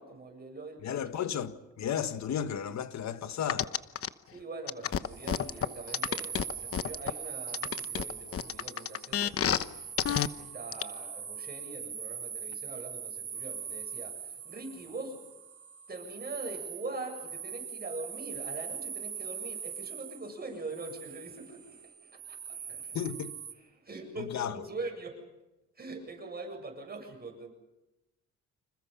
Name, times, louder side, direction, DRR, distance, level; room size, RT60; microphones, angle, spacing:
voice 1, 0.0-1.1 4.3-9.7 10.4-15.3 15.9-23.0 23.6-25.3 25.8-27.5, right 3 dB, 30° right, 7.7 m, -43 dB
voice 2, 0.8-3.7 22.9-23.3 24.3-24.5, left 8 dB, 65° left, 1.7 m, -33 dB
sound 1, 3.5-4.1 4.7-7.1 7.5-9.6 10.0-10.3 10.7-10.8, left 9 dB, 50° left, 1.0 m, -29 dB
sound 2, 5.0-23.5, right 7 dB, 50° right, 2.6 m, -42 dB
29.5 x 27.0 x 5.7 m
cardioid pair, 90°, 30 cm